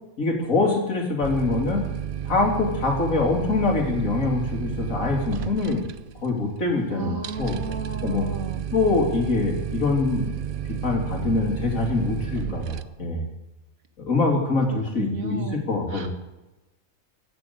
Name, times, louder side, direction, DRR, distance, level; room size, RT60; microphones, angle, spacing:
voice 1, 0.2-1.8 2.2-5.8 6.2-7.5 8.0-8.3 8.7-10.3 10.7-13.2 14.0-16.1, left 3 dB, 70° left, 0 dB, 3.4 m, -24 dB
sound 1, 1.2-12.8, right 9 dB, 55° right, 0.6 m, -32 dB
voice 2, 6.9-8.6 14.9-15.6 15.9-16.1, right 5 dB, 75° right, 6 dB, 2.0 m, -33 dB
15.0 x 6.8 x 9.6 m, 1.0 s
omnidirectional pair, 1.5 m